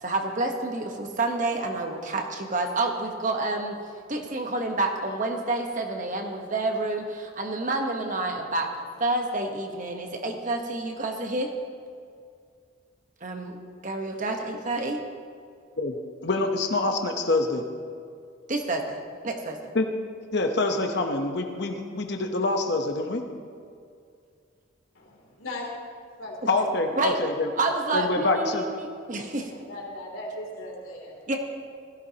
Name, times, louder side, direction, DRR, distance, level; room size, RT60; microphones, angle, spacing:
voice 1, 0.0-3.8 4.1-8.7 9.0-11.5 13.2-13.6 13.8-15.0 18.5-19.6 27.0-27.2 27.6-29.5 31.3-31.4, right 2 dB, 40° right, 3 dB, 1.1 m, -28 dB
voice 2, 16.2-17.6 19.7-19.9 20.3-23.2 26.5-27.5 27.9-28.6, left 2 dB, 55° left, 4 dB, 0.9 m, -25 dB
voice 3, 24.9-25.6 26.2-26.5 29.5-31.2, left 1 dB, 90° left, -2 dB, 3.1 m, -38 dB
16.5 x 14.5 x 2.9 m, 2.3 s
head